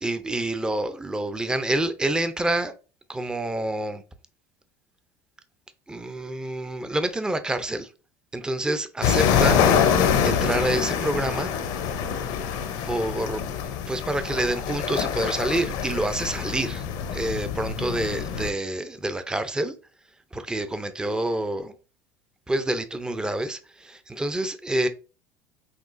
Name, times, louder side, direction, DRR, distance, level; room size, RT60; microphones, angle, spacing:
voice 1, 0.0-2.7 3.1-4.0 5.9-7.9 8.3-9.6 10.2-11.5 12.8-19.7 20.3-21.7 22.5-24.9, right 1 dB, 10° right, 0.5 m, -27 dB
sound 1, 9.0-18.5, left 7 dB, 70° left, 0.7 m, -25 dB
6.0 x 2.3 x 2.5 m
supercardioid pair, 95°, 8 cm